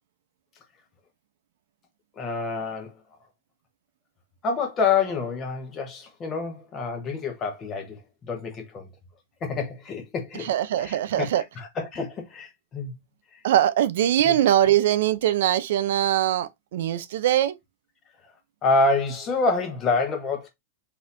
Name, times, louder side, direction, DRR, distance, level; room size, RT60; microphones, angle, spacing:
voice 1, 2.2-3.0 4.4-8.9 9.4-10.5 10.8-11.3 11.6-12.9 13.3-13.4 14.3-14.4 18.6-20.5, left 4 dB, 25° left, 0.9 m, -27 dB
voice 2, 10.4-11.4 13.4-17.6, right 12 dB, 70° right, 0.4 m, -22 dB
4.0 x 2.7 x 2.5 m
supercardioid pair, 140°, 0 cm